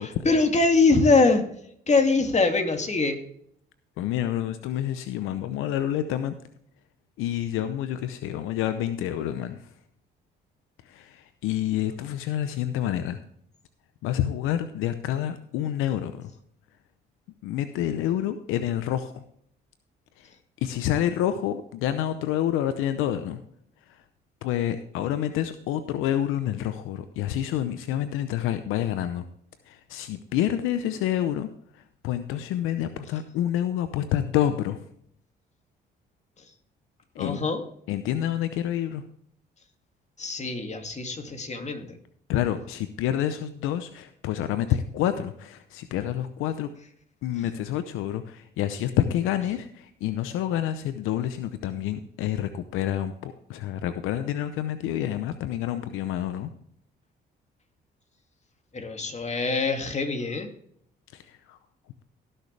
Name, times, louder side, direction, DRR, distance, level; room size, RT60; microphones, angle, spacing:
voice 1, 0.0-1.4 1.9-3.2 37.2-37.6 40.2-42.0 58.7-60.5, left 3 dB, 35° left, 5 dB, 2.4 m, -23 dB
voice 2, 4.0-6.3 7.2-9.7 10.8-13.2 14.0-16.3 17.4-19.2 20.2-20.3 20.6-23.4 23.9-24.0 24.4-29.2 29.7-31.5 31.7-34.8 37.1-37.4 37.9-39.0 42.3-46.7 47.2-56.5 61.1-61.6, left 11 dB, 80° left, 11 dB, 0.7 m, -28 dB
17.5 x 6.7 x 3.3 m, 0.67 s
supercardioid pair, 60°, 21 cm